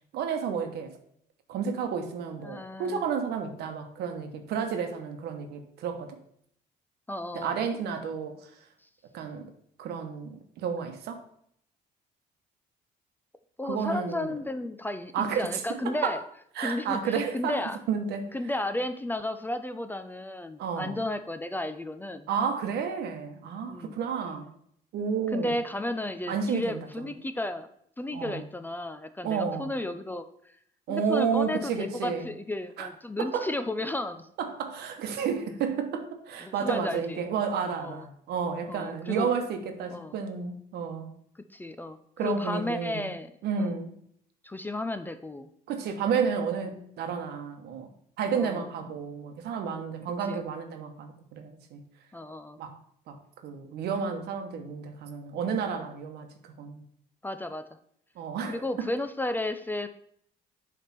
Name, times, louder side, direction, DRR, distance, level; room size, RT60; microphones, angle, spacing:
voice 1, 0.1-0.9 1.5-6.2 7.3-8.5 9.1-9.5 9.8-11.2 13.6-14.3 15.1-16.2 16.6-18.3 20.6-21.0 22.3-24.5 24.9-25.5 26.3-26.8 28.1-28.4 29.2-29.7 30.9-32.3 32.8-32.9 33.2-33.5 34.4-41.1 42.2-43.1 43.4-43.9 45.7-47.9 48.2-51.8 52.6-52.8 53.1-53.2 53.4-56.3 56.6-56.8 58.2-58.9, right 6 dB, 75° right, 6 dB, 1.1 m, -31 dB
voice 2, 2.4-3.0 7.1-7.6 13.6-16.2 16.6-17.8 18.3-22.3 23.7-24.0 25.3-27.7 28.0-30.5 30.9-34.3 36.4-37.2 37.8-38.1 38.7-39.3 39.9-40.2 41.5-43.3 43.6-43.7 44.4-45.5 48.4-48.6 50.3-50.4 52.1-52.6 57.2-57.6 58.5-59.9, left 1 dB, 10° left, 10 dB, 0.4 m, -33 dB
7.4 x 3.5 x 5.8 m, 0.68 s
cardioid pair, 110°, 17 cm